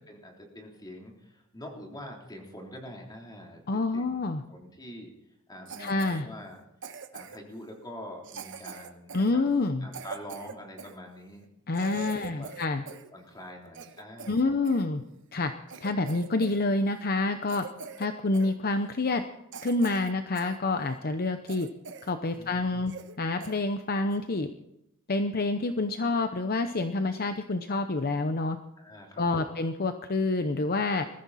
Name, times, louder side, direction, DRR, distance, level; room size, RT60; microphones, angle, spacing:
voice 1, 0.1-4.2 4.5-5.1 5.5-6.6 7.1-9.4 9.8-11.5 11.7-12.5 12.9-14.6 22.4-22.9 28.8-29.6, equal, 20° left, 0 dB, 3.4 m, -45 dB
voice 2, 3.7-4.4 5.8-6.3 9.1-9.9 11.7-12.8 14.3-15.0 15.3-15.5 15.8-17.7 18.0-19.2 19.6-21.7 22.0-22.9 23.2-24.5 25.1-28.6 29.2-31.0, left 2 dB, 45° left, 8 dB, 0.8 m, -27 dB
Cough, 5.7-6.2 6.8-7.5 8.2-11.0 11.4-11.5 11.7-13.1 13.4-14.8 15.3-15.4 15.7-16.6 16.9-17.1 17.5-18.1 18.3-18.5 19.0-19.1 19.5-20.6 21.0-21.1 21.5-22.2 22.5-22.6 22.9-23.2 23.4-23.6 24.1-24.3, right 5 dB, 55° right, 1.2 m, -43 dB
21.0 x 14.5 x 4.2 m, 0.84 s
head